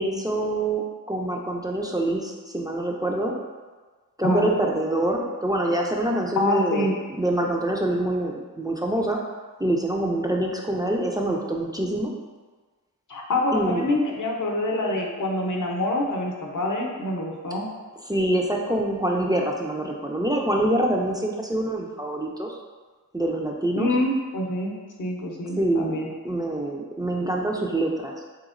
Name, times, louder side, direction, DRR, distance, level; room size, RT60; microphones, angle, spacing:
voice 1, 0.0-3.3 4.2-9.2 9.6-12.1 13.5-14.0 18.1-22.5 23.1-24.0 25.6-25.9 26.2-28.1, right 1 dB, 10° right, -1 dB, 0.3 m, -25 dB
voice 2, 6.4-6.9 13.1-17.7 23.7-24.7 25.0-26.1, left 1 dB, 60° left, 0 dB, 0.7 m, -26 dB
3.4 x 2.9 x 2.4 m, 1.4 s
wide cardioid pair, 55°, 36 cm